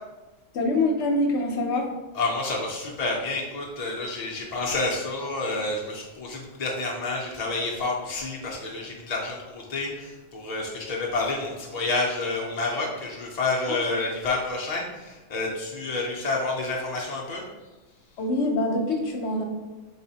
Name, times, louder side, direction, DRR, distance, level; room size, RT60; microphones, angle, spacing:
voice 1, 0.5-1.9 13.7-13.8 18.2-19.4, left 2 dB, 60° left, 2 dB, 0.8 m, -25 dB
voice 2, 2.1-17.4, left 3 dB, 85° left, -2 dB, 0.3 m, -29 dB
4.1 x 3.8 x 2.7 m, 1.1 s
omnidirectional pair, 1.5 m